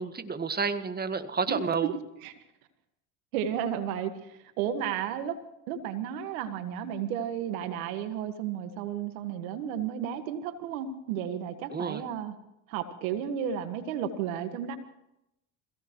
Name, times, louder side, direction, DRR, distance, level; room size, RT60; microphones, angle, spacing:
voice 1, 0.0-1.9 11.7-12.0, right 5 dB, 20° right, 9 dB, 1.6 m, -30 dB
voice 2, 1.5-2.3 3.3-5.4 5.7-12.3 12.7-14.8, right 9 dB, 85° right, 9 dB, 1.8 m, -33 dB
27.5 x 17.0 x 3.1 m, 0.85 s
supercardioid pair, 75°, 41 cm